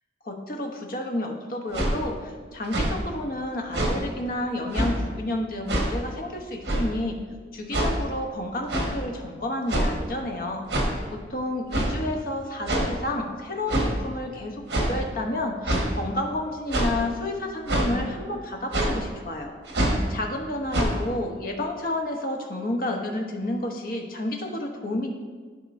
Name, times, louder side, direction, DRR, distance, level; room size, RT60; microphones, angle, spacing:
voice 1, 0.2-7.2 7.5-10.6 11.1-19.5 20.1-25.1, left 1 dB, 50° left, 2 dB, 0.8 m, -30 dB
sound 1, 1.7-1.9 2.6-2.9 3.7-3.9 4.7-4.9 5.7-5.9 6.6-6.9 7.7-7.9 8.7-8.9 9.7-10.0 10.7-10.9 11.7-11.9 12.7-12.9 13.7-13.9 14.7-14.9 15.6-15.9 16.7-16.9 17.7-17.9 18.7-18.9 19.7-20.0 20.7-20.8, right 1 dB, 70° right, 1.4 m, -24 dB
11.0 x 5.2 x 2.6 m, 1.5 s
head